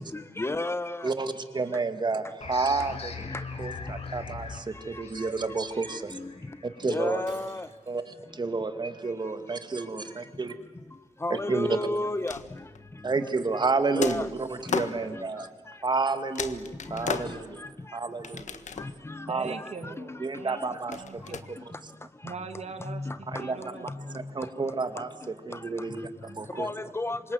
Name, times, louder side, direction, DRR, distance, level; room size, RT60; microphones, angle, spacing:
voice 1, 0.0-1.1 3.3-3.4 4.9-5.3 5.9-6.3 6.8-7.7 11.2-12.6 13.9-14.3 14.7-15.3 16.8-18.0 18.8-19.3 19.6-21.0 22.3-22.4 22.8-23.5 23.9-24.2 25.0-25.1 25.5-25.7 26.5-27.3, left 2 dB, 20° left, 0.8 m, -34 dB
voice 2, 1.0-3.1 3.6-6.2 6.8-7.2 7.9-10.5 11.3-11.7 13.0-15.5 15.8-17.6 17.9-18.6 19.3-19.5 20.2-21.0 21.3-21.6 23.3-23.6 24.3-26.7, right 4 dB, 40° right, 2.2 m, -30 dB
sound 1, 2.4-7.7, left 4 dB, 55° left, 3.0 m, -40 dB
Shatter, 7.3-8.1, right 4 dB, 85° right, 3.8 m, -51 dB
sound 2, 12.1-12.9 14.0-15.0 15.9-16.0 16.4-17.7 18.2-19.1 20.9-21.4, left 6 dB, 80° left, 1.6 m, -35 dB
voice 3, 19.3-21.4 22.2-24.2, right 5 dB, 65° right, 2.4 m, -41 dB
28.0 x 25.0 x 7.9 m
wide cardioid pair, 130°, 12 cm